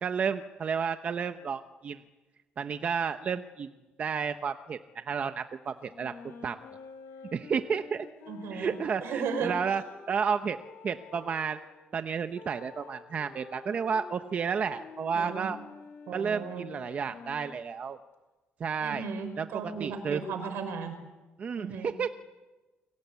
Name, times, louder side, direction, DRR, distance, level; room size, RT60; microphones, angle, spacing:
voice 1, 0.0-2.0 2.6-3.7 4.0-6.6 7.3-8.1 8.5-10.6 10.8-11.6 11.9-15.6 16.1-18.0 18.6-19.0 19.4-20.2 21.4-22.2, right 6 dB, 35° right, 8 dB, 0.9 m, -31 dB
sound 1, 5.8-11.6 12.3-17.8, left 4 dB, 75° left, 4.4 m, -49 dB
voice 2, 8.3-8.7 9.0-9.6 15.1-15.5 16.1-16.7 18.8-21.0 21.6-21.9, right 5 dB, 80° right, 9 dB, 5.4 m, -35 dB
29.5 x 23.5 x 8.3 m, 1.2 s
cardioid pair, 165°, 4 cm